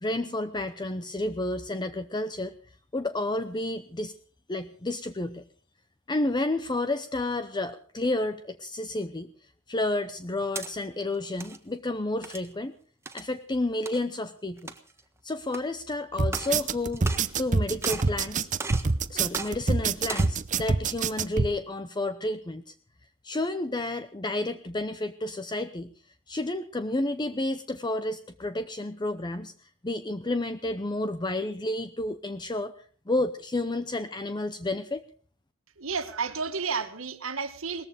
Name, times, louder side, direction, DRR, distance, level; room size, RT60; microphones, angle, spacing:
voice 1, 0.0-2.5 2.9-4.1 4.5-5.4 6.1-12.7 13.1-14.7 15.2-17.1 17.4-18.5 19.1-22.7 23.2-25.9 26.3-35.0, left 2 dB, 20° left, 11 dB, 0.7 m, -31 dB
sound 1, 10.2-10.7 11.2-11.6 12.2-12.5 13.1-13.3 13.9-14.0 14.6-15.0 15.5-15.6 16.2-16.6 16.9-17.5 17.8-18.2 18.6-18.9 19.3-19.5 20.0-20.4, right 3 dB, 15° right, 1.4 m, -36 dB
sound 2, 16.2-21.5, right 4 dB, 40° right, 0.7 m, -26 dB
voice 2, 35.8-37.9, right 5 dB, 75° right, 8 dB, 1.9 m, -31 dB
19.0 x 14.5 x 5.1 m, 0.42 s
head